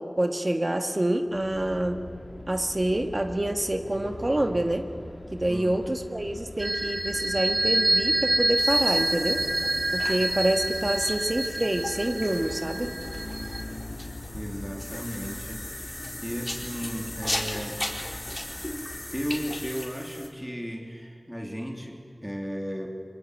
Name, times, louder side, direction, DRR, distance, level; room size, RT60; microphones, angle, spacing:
voice 1, 0.0-2.0 2.5-4.9 5.3-9.4 9.9-13.0, right 1 dB, 40° right, 6 dB, 1.7 m, -27 dB
sound 1, 1.2-20.0, left 1 dB, 60° left, 2.4 m, -42 dB
voice 2, 5.5-5.8 14.3-15.7 16.2-17.8 19.1-22.9, equal, 5° right, 1 dB, 3.2 m, -35 dB
sound 2, 6.6-13.6, right 1 dB, 60° right, 3.8 m, -27 dB
sound 3, 8.6-20.3, left 1 dB, 25° left, 4.2 m, -37 dB
23.5 x 23.5 x 9.4 m, 2.3 s
wide cardioid pair, 40°, 0 cm